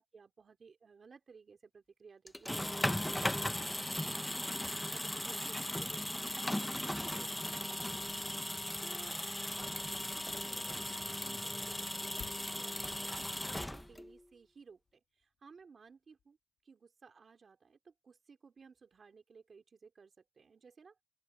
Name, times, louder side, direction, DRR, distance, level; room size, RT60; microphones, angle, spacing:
voice 1, 0.0-4.1 4.9-8.4 8.8-9.2 10.1-16.4 16.6-21.0, right 5 dB, 55° right, 3.4 m, -58 dB
sound 1, 2.3-14.2, left 1 dB, 10° left, 1.0 m, -37 dB
Motor vehicle (road), 14.3-16.7, left 7 dB, 85° left, 2.6 m, -61 dB
open air
wide cardioid pair, 105°, 0 cm